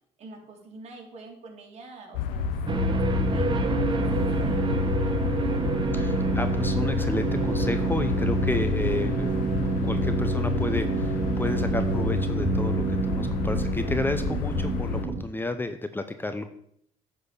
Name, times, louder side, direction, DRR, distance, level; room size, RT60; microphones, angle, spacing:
voice 1, 0.2-2.5 2.9-5.1, right 3 dB, 50° right, 1 dB, 2.8 m, -46 dB
sound 1, 2.1-15.1, left 6 dB, 90° left, 0.7 m, -30 dB
sound 2, 2.7-15.2, right 3 dB, 35° right, 1.0 m, -27 dB
voice 2, 5.9-9.4 9.8-16.5, left 2 dB, 15° left, 9 dB, 0.8 m, -31 dB
9.5 x 4.4 x 6.9 m, 0.67 s
supercardioid pair, 90°, 14 cm